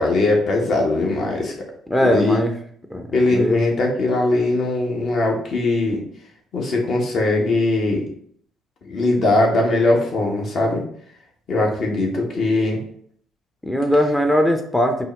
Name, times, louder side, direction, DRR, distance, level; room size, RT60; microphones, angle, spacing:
voice 1, 0.0-1.5 2.1-2.4 3.1-6.0 6.5-8.0 8.9-10.8 11.5-12.8, left 2 dB, 50° left, -1 dB, 1.2 m, -20 dB
voice 2, 1.9-2.5 2.9-3.6 13.6-15.1, equal, 10° left, 5 dB, 0.6 m, -20 dB
4.4 x 3.0 x 3.3 m, 0.62 s
figure-of-eight pair, 50°, 0 cm